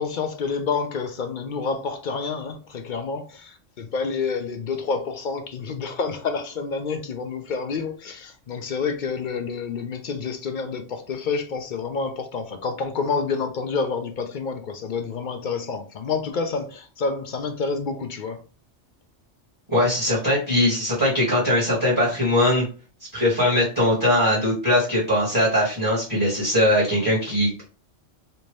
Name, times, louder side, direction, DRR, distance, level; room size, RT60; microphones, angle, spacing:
voice 1, 0.0-18.4, left 5 dB, 55° left, 0.5 m, -28 dB
voice 2, 19.7-22.6 23.1-27.6, left 1 dB, 15° right, 1.7 m, -21 dB
3.4 x 2.7 x 3.1 m
omnidirectional pair, 1.3 m